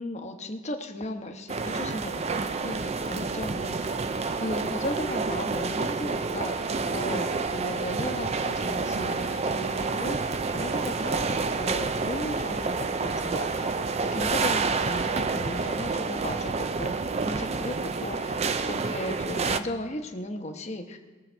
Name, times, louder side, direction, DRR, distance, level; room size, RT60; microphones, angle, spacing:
voice 1, 0.0-4.0 4.4-13.7 14.0-16.9 17.2-18.4 18.7-21.0, left 1 dB, 35° left, 4 dB, 1.0 m, -36 dB
sound 1, 1.5-19.6, right 4 dB, 30° right, 0.4 m, -29 dB
21.5 x 7.4 x 4.5 m, 1.3 s
head